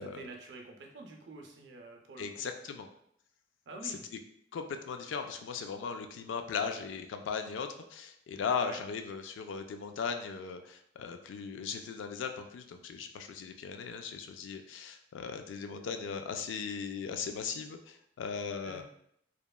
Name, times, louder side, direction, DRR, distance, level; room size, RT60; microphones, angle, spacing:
voice 1, 0.0-2.4 3.7-4.0 8.6-8.8 18.6-18.8, right 3 dB, 70° right, 1 dB, 0.5 m, -47 dB
voice 2, 2.2-2.9 3.8-4.0 4.5-18.8, left 6 dB, 85° left, 6 dB, 0.3 m, -38 dB
2.9 x 2.2 x 2.3 m, 0.71 s
head